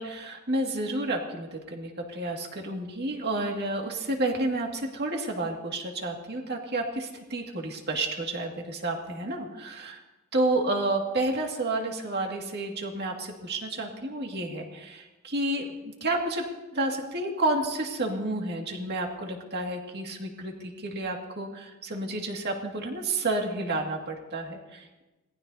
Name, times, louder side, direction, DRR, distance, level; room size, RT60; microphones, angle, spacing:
voice 1, 0.0-9.9 10.3-25.0, right 2 dB, 50° right, 2 dB, 2.2 m, -30 dB
26.5 x 19.0 x 2.8 m, 1.1 s
head